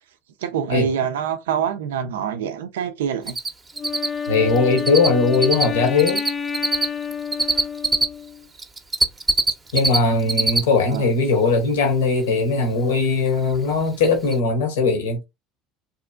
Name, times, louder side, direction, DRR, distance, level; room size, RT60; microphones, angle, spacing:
voice 1, 0.4-3.4 10.9-11.0, right 8 dB, 80° right, 0.4 m, -25 dB
Cricket, 3.3-3.5 3.8-5.1 5.3-8.1 8.6-10.0 10.2-10.6 10.9-11.0 13.5-13.6 14.0-14.1 14.3-14.4, right 2 dB, 20° right, 0.6 m, -20 dB
Wind instrument woodwind instrument, 3.7-8.5, left 7 dB, 30° left, 0.5 m, -29 dB
voice 2, 4.3-6.2 9.7-15.2, left 4 dB, 80° left, 0.9 m, -19 dB
2.8 x 2.4 x 2.3 m
hypercardioid pair, 80°, 0 cm